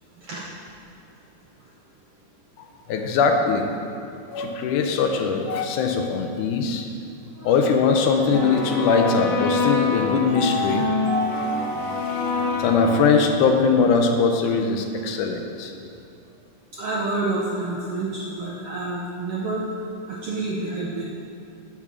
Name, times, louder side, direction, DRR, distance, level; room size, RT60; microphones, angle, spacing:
voice 1, 2.9-3.7 4.3-6.9 7.4-15.7, left 5 dB, 85° left, 4 dB, 2.2 m, -22 dB
sound 1, 8.3-13.5, left 3 dB, 60° left, 2.3 m, -25 dB
voice 2, 16.7-19.7 20.1-21.1, right 2 dB, 75° right, -4 dB, 1.3 m, -29 dB
7.0 x 6.7 x 6.0 m, 2.6 s
omnidirectional pair, 3.6 m